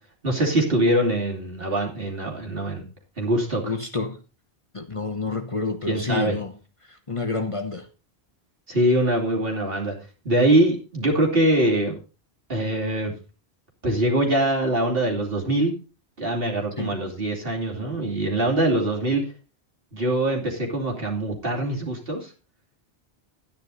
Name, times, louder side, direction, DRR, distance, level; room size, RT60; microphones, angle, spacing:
voice 1, 0.2-2.8 3.2-3.7 5.9-6.4 8.7-9.9 10.2-11.9 12.5-13.1 13.8-15.7 16.2-19.2 19.9-22.3, right 1 dB, 60° right, -1 dB, 3.1 m, -23 dB
voice 2, 3.6-4.2 4.7-6.5 6.8-7.9 16.8-16.9, left 3 dB, 30° left, 4 dB, 0.9 m, -29 dB
11.5 x 9.7 x 4.0 m, 0.32 s
omnidirectional pair, 1.1 m